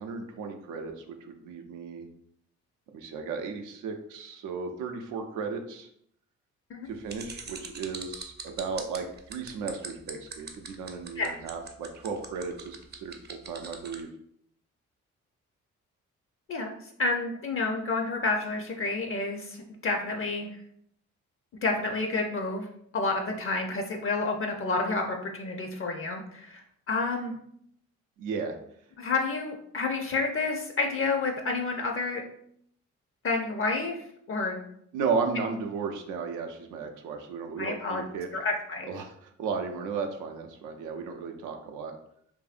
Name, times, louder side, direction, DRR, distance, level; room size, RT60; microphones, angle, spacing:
voice 1, 0.0-2.1 2.9-5.9 6.9-14.1 28.2-28.6 34.9-38.3 38.8-42.0, right 5 dB, 85° right, 4 dB, 0.5 m, -35 dB
sound 1, 7.1-14.0, right 5 dB, 35° right, 0.5 m, -41 dB
voice 2, 16.5-20.5 21.6-22.7 22.9-26.6 26.9-27.3 29.0-32.2 33.2-34.7 37.6-38.0 38.3-38.9, left 3 dB, 45° left, 3 dB, 0.5 m, -29 dB
2.7 x 2.6 x 2.4 m, 0.69 s
supercardioid pair, 65°, 30 cm